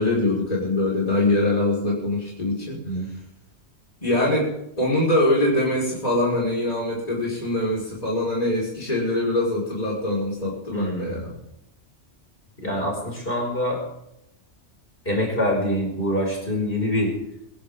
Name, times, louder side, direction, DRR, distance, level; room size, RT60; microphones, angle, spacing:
voice 1, 0.0-2.8 4.0-4.5 4.8-11.3 12.6-12.7, left 1 dB, 35° left, -4 dB, 5.4 m, -23 dB
voice 2, 10.7-11.4 12.6-13.8 15.0-17.1, equal, 50° left, -2 dB, 6.0 m, -25 dB
23.0 x 15.5 x 3.8 m, 0.80 s
omnidirectional pair, 1.2 m